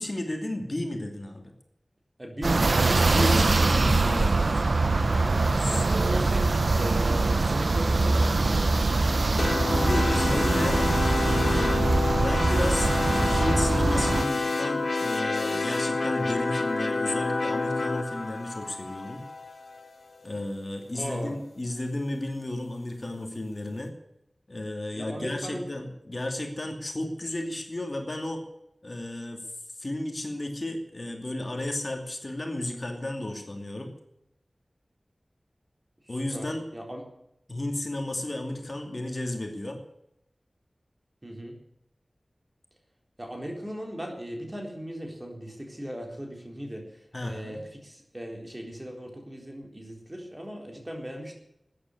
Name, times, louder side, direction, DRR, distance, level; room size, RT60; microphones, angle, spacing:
voice 1, 0.0-1.5 3.1-4.6 5.6-6.2 9.7-10.8 11.2-19.2 20.2-23.9 24.5-28.4 28.8-29.4 29.8-33.9 36.1-36.6 37.5-39.8 47.1-47.6, left 1 dB, 40° left, 3 dB, 2.6 m, -33 dB
voice 2, 2.2-2.7 3.1-3.8 4.4-4.7 5.7-6.5 6.7-8.9 9.4-11.0 20.9-21.3 24.9-25.9 36.1-37.0 41.2-41.6 43.2-51.3, equal, 25° right, 1 dB, 4.0 m, -38 dB
sound 1, 2.4-14.2, right 3 dB, 70° right, 0.8 m, -23 dB
sound 2, 9.4-19.9, left 3 dB, 90° left, 1.7 m, -28 dB
14.0 x 9.8 x 9.7 m, 0.81 s
wide cardioid pair, 70°, 0 cm